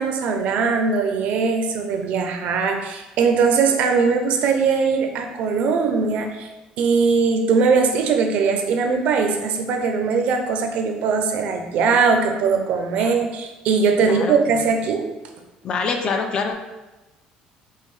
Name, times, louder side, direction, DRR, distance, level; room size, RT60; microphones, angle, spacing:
voice 1, 0.0-6.5 6.8-15.0, right 5 dB, 60° right, 4 dB, 0.5 m, -20 dB
voice 2, 14.0-14.4 15.6-16.5, left 4 dB, 40° left, 4 dB, 0.4 m, -25 dB
5.5 x 2.2 x 3.2 m, 1.1 s
cardioid pair, 150°, 3 cm